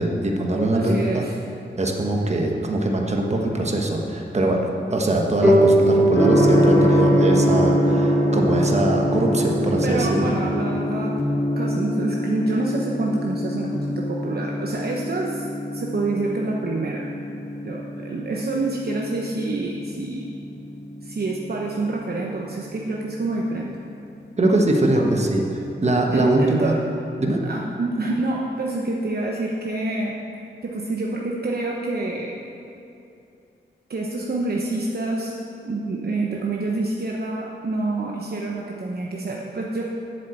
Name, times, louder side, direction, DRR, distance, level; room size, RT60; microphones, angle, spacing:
voice 1, 0.0-1.2 1.8-10.3 24.4-25.4 25.8-26.7 27.2-27.4, right 1 dB, 35° right, 1 dB, 1.3 m, -22 dB
voice 2, 0.7-1.3 9.8-11.2 11.6-15.4 15.7-17.1 17.6-20.3 21.0-23.7 24.9-25.0 25.4-25.5 25.8-26.8 27.4-30.1 30.6-32.4 33.9-35.3 35.6-39.8, right 2 dB, 55° right, -2 dB, 0.9 m, -27 dB
sound 1, 5.4-8.7, right 1 dB, 5° right, 2.4 m, -21 dB
Gong, 6.1-24.0, equal, 15° left, 2.2 m, -24 dB
7.8 x 7.4 x 8.0 m, 2.6 s
wide cardioid pair, 100°, 19 cm